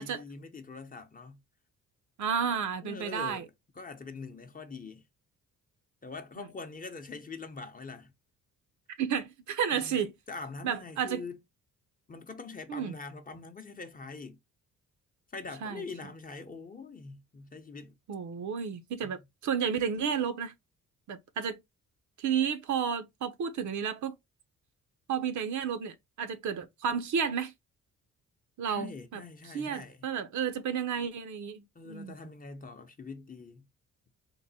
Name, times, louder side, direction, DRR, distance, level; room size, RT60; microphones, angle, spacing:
voice 1, 0.0-1.4 2.8-5.0 6.0-8.1 9.7-10.0 10.3-11.4 12.1-14.4 15.3-17.9 19.0-19.2 28.7-30.0 31.7-33.6, left 4 dB, 25° left, 0.7 m, -43 dB
voice 2, 2.2-3.4 6.4-6.5 8.9-10.1 10.6-11.2 12.7-12.9 15.6-15.8 18.1-20.5 21.1-21.6 22.2-24.2 25.1-27.5 28.6-29.2 29.5-32.1, right 7 dB, 60° right, 0.7 m, -32 dB
3.8 x 2.1 x 4.0 m
cardioid pair, 105°, 32 cm